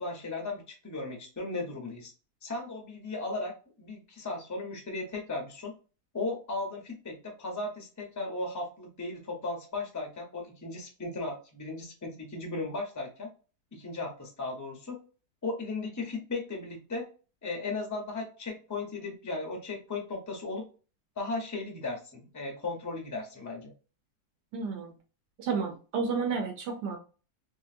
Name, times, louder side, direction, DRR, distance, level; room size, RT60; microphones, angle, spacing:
voice 1, 0.0-2.1 2.4-3.5 3.8-5.7 6.1-13.3 13.7-15.0 15.4-17.1 17.4-20.7 21.2-23.7, left 3 dB, 20° left, 1 dB, 0.5 m, -36 dB
voice 2, 24.5-24.9 25.4-27.0, right 5 dB, 80° right, 1 dB, 1.3 m, -31 dB
2.9 x 2.7 x 2.4 m, 0.34 s
omnidirectional pair, 1.8 m